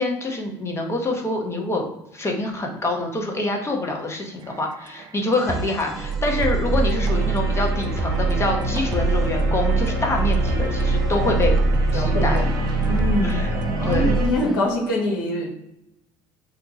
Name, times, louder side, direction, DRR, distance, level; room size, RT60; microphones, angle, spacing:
voice 1, 0.0-1.9 2.1-11.5 11.9-12.4 13.2-13.5 13.8-14.1, left 2 dB, 25° left, 1 dB, 0.9 m, -26 dB
sound 1, 4.4-6.0 6.4-14.9, right 3 dB, 40° right, 0.4 m, -34 dB
sound 2, 5.3-14.6, right 1 dB, ahead, 0.7 m, -39 dB
sound 3, 5.9-14.3, right 3 dB, 70° right, 0.7 m, -22 dB
voice 2, 11.9-12.5 12.9-13.4 13.8-15.5, left 1 dB, 85° left, -1 dB, 0.9 m, -24 dB
2.6 x 2.2 x 4.1 m, 0.84 s
hypercardioid pair, 65°, 11 cm